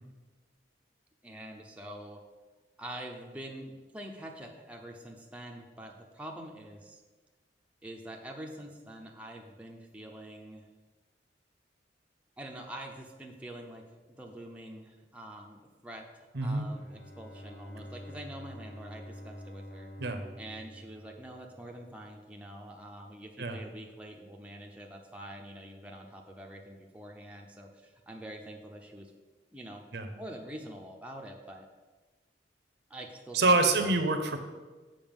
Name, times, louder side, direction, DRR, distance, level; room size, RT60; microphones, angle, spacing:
voice 1, 1.2-2.2 2.8-7.0 7.8-10.6 12.4-13.8 14.2-19.9 20.4-29.1 29.5-29.8 30.2-31.7 32.9-33.9, right 1 dB, 5° right, 0 dB, 0.6 m, -45 dB
voice 2, 16.3-16.7 20.0-20.2 23.4-23.6 29.9-30.1 33.3-34.4, right 3 dB, 60° right, 7 dB, 0.7 m, -26 dB
Bowed string instrument, 16.7-21.9, equal, 50° left, 1.5 m, -47 dB
7.1 x 5.5 x 5.3 m, 1.3 s
head